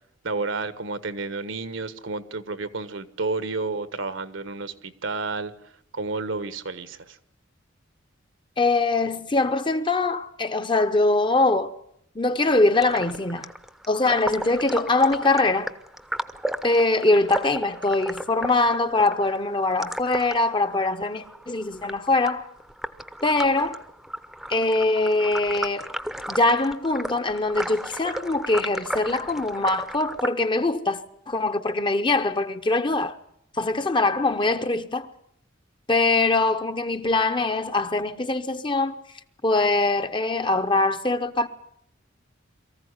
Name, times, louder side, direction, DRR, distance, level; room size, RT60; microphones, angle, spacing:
voice 1, 0.2-5.5 5.9-7.2, right 3 dB, 75° right, 1.3 m, -31 dB
voice 2, 8.6-11.7 12.1-13.5 13.9-15.7 16.6-22.5 23.2-23.8 24.5-25.9 26.3-33.2 33.6-35.1 35.9-39.0 39.4-41.5, left 2 dB, 25° left, 0.9 m, -23 dB
sound 1, 12.7-30.3, right 1 dB, ahead, 0.8 m, -35 dB
23.0 x 15.0 x 9.8 m
head